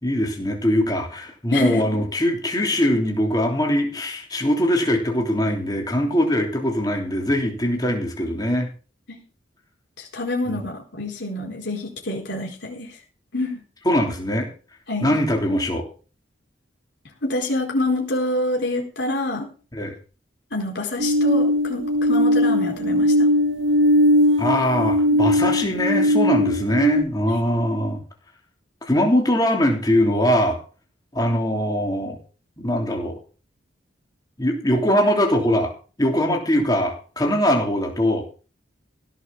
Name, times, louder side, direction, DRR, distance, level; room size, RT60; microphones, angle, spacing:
voice 1, 0.0-8.7 10.5-10.7 13.8-14.5 15.0-15.9 19.7-19.9 24.4-28.0 28.8-30.6 31.1-32.2 32.6-33.2 34.4-35.7 36.0-38.2, equal, 20° left, 1 dB, 3.2 m, -21 dB
voice 2, 1.5-1.8 7.7-7.8 9.1-9.2 10.0-12.9 13.3-13.6 14.9-15.2 17.2-19.5 20.5-23.3 25.1-25.2 27.3-27.5, left 2 dB, 65° left, 0 dB, 4.5 m, -27 dB
sound 1, 21.0-27.0, left 1 dB, 90° right, 1.6 m, -19 dB
16.5 x 6.2 x 6.9 m, 0.38 s
head